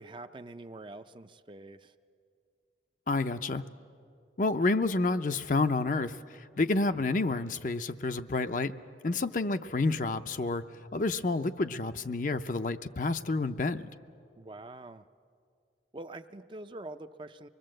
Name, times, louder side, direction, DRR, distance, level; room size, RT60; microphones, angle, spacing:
voice 1, 0.0-1.9 14.4-15.1 15.9-17.5, right 2 dB, 25° right, 9 dB, 0.5 m, -45 dB
voice 2, 3.1-3.6 4.4-8.7 9.0-10.6 10.9-13.9, left 3 dB, 45° left, 9 dB, 0.6 m, -29 dB
24.5 x 21.5 x 7.7 m, 2.3 s
head